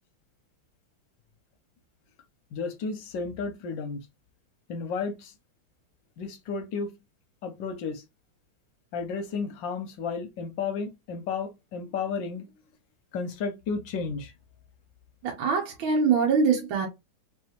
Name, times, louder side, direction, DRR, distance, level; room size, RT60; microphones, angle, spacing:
voice 1, 2.5-4.1 4.7-5.3 6.2-6.9 7.4-8.0 8.9-12.5 13.1-14.3, left 5 dB, 70° left, 1.3 m, -32 dB
voice 2, 15.2-16.9, right 5 dB, 70° right, 1.8 m, -23 dB
4.1 x 3.3 x 3.0 m
omnidirectional pair, 2.4 m